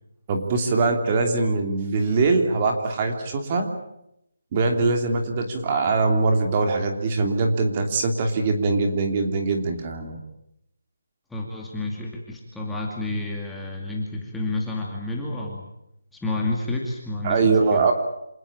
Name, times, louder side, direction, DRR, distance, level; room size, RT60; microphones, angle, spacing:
voice 1, 0.3-3.7 4.5-10.2 17.2-17.9, right 3 dB, 25° right, 4 dB, 3.1 m, -22 dB
voice 2, 11.3-15.7 16.1-17.9, left 2 dB, 5° left, -3 dB, 2.4 m, -30 dB
27.5 x 19.5 x 8.9 m, 0.80 s
hypercardioid pair, 170°, 0 cm